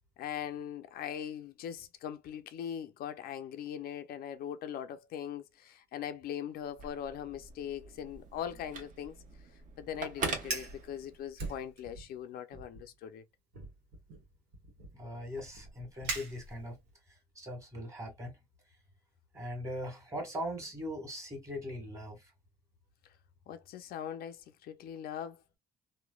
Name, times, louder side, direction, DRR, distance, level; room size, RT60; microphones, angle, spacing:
voice 1, 0.2-9.2 9.8-13.2 23.0-23.1 23.5-25.4, left 9 dB, 65° left, 0.4 m, -41 dB
Telephone, 6.6-11.4, right 4 dB, 50° right, 1.0 m, -42 dB
Fire, 10.5-10.8 11.4-12.1 12.5-12.8 13.5-16.9, right 3 dB, 90° right, 1.1 m, -42 dB
voice 2, 14.9-16.7 17.3-18.3 19.3-22.2, equal, 20° right, 1.5 m, -40 dB
3.1 x 2.1 x 2.2 m
cardioid pair, 110°, 17 cm